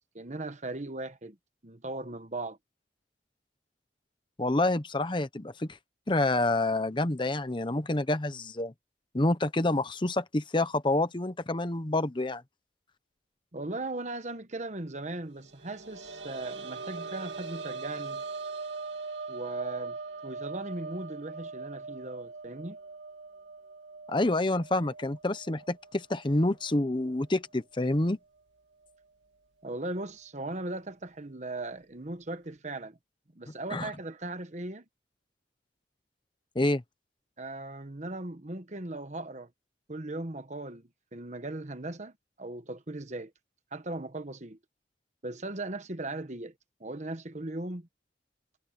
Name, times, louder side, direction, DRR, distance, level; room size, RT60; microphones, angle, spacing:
voice 1, 0.0-1.4 1.6-2.6 13.5-18.2 19.3-20.0 20.2-22.8 29.6-33.0 33.3-34.8 37.4-39.5 39.9-43.3 43.7-44.6 45.2-46.5 46.8-47.9, right 2 dB, 40° right, 1.2 m, -38 dB
voice 2, 4.4-5.7 6.1-8.7 9.1-12.4 24.1-28.2 33.7-33.9 36.5-36.8, left 2 dB, 25° left, 0.8 m, -28 dB
sound 1, 15.4-26.9 27.2-27.3 28.8-28.9, right 4 dB, 85° right, 2.1 m, -41 dB
head